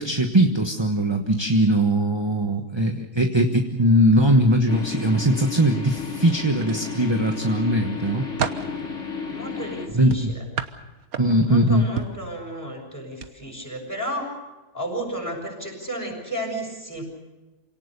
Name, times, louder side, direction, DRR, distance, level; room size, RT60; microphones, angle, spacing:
voice 1, 0.0-8.2 9.9-10.3 11.2-11.9, right 1 dB, 20° right, 5 dB, 1.2 m, -20 dB
sound 1, 4.7-9.9, left 5 dB, 55° left, 3.0 m, -33 dB
sound 2, 6.6-7.4 7.9-8.7 10.1-11.5 12.0-12.3 13.1-13.3 13.7-13.9, right 7 dB, 80° right, 1.6 m, -31 dB
voice 2, 9.3-10.4 11.4-14.3 14.7-17.0, right 1 dB, 10° left, 1 dB, 7.0 m, -33 dB
28.0 x 18.0 x 6.9 m, 1.1 s
omnidirectional pair, 1.5 m